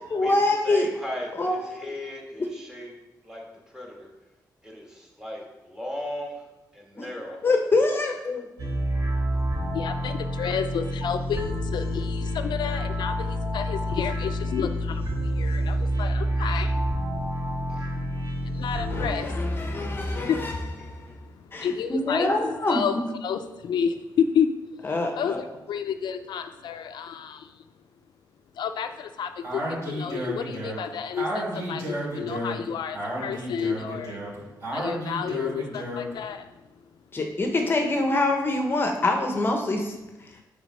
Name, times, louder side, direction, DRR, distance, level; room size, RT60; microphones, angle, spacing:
voice 1, 0.0-0.9 1.3-1.9 7.0-7.1 7.4-8.5 18.9-20.6 20.8-21.1 21.5-23.0 24.8-25.4 37.1-39.9, left 2 dB, 30° left, 3 dB, 0.7 m, -25 dB
voice 2, 0.6-1.5 1.8-2.9 3.3-3.4 3.7-4.1 4.6-6.4 6.7-7.4 17.7-17.8, left 1 dB, 10° right, -1 dB, 1.3 m, -37 dB
sound 1, 8.6-19.1, equal, 65° right, 1.6 m, -28 dB
voice 3, 9.7-17.5 17.8-18.1 18.4-19.9 20.1-20.6 21.0-22.3 22.7-22.9 23.2-24.5 25.2-25.3 25.7-27.6 28.6-34.2 34.7-36.5, left 7 dB, 75° left, 8 dB, 0.4 m, -31 dB
Speech, 29.4-36.2, equal, 40° right, 2.5 m, -32 dB
8.4 x 3.4 x 5.3 m, 1.0 s
wide cardioid pair, 160°, 8 cm